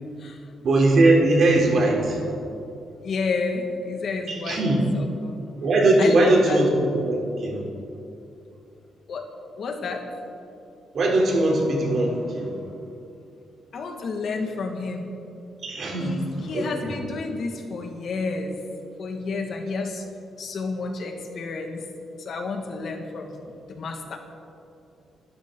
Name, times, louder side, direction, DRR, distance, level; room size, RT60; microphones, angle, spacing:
voice 1, 0.6-2.2 4.3-4.8 5.6-6.7 7.0-7.6 10.9-12.5 15.6-16.1 16.5-16.9, right 2 dB, 45° right, -1 dB, 3.5 m, -20 dB
voice 2, 3.0-4.6 4.9-5.4 6.0-6.6 9.1-9.3 9.6-10.0 13.7-15.1 16.0-18.6 19.0-20.0 20.4-21.8 22.2-24.2, left 4 dB, 50° left, 3 dB, 1.9 m, -30 dB
28.5 x 13.0 x 3.9 m, 2.7 s
wide cardioid pair, 175°, 0 cm